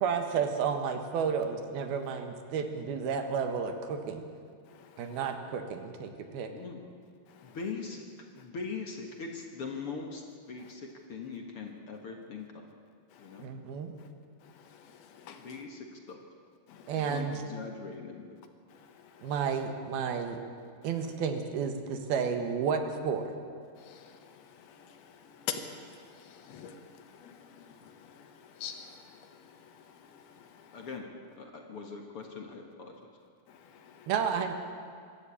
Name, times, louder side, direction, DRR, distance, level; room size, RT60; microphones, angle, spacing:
voice 1, 0.0-4.2 5.0-6.5 13.4-13.9 16.9-17.3 19.2-20.4 20.8-23.2 34.1-34.5, right 6 dB, 80° right, 6 dB, 3.4 m, -31 dB
voice 2, 4.7-5.3 7.3-7.6 10.6-10.7 13.1-13.5 14.0-14.1 14.4-15.6 16.7-17.2 18.7-19.5 20.8-21.0 23.8-30.9 33.5-34.1, left 7 dB, 85° left, 6 dB, 3.3 m, -47 dB
voice 3, 6.5-6.8 7.4-8.0 8.4-12.7 13.2-13.5 15.4-16.2 16.9-18.4 30.7-31.1 31.4-33.1, left 4 dB, 50° left, 2 dB, 1.9 m, -41 dB
25.0 x 13.0 x 8.5 m, 2.2 s
omnidirectional pair, 4.4 m